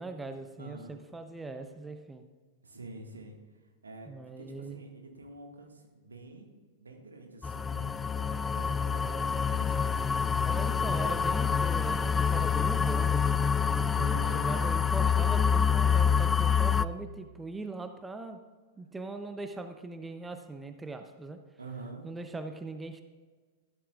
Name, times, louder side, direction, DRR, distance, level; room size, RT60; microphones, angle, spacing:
voice 1, 0.0-2.2 4.1-4.8 10.4-13.3 13.8-18.4 18.8-21.4 22.0-23.0, right 3 dB, 10° right, 8 dB, 0.7 m, -40 dB
voice 2, 0.6-1.0 2.6-3.4 3.8-6.5 6.8-10.0 13.9-14.4 21.6-22.1, right 2 dB, 80° right, 2 dB, 1.8 m, -47 dB
sound 1, 7.4-16.9, left 6 dB, 15° left, 0.3 m, -27 dB
13.5 x 12.0 x 2.5 m, 1.4 s
figure-of-eight pair, 100°, 0 cm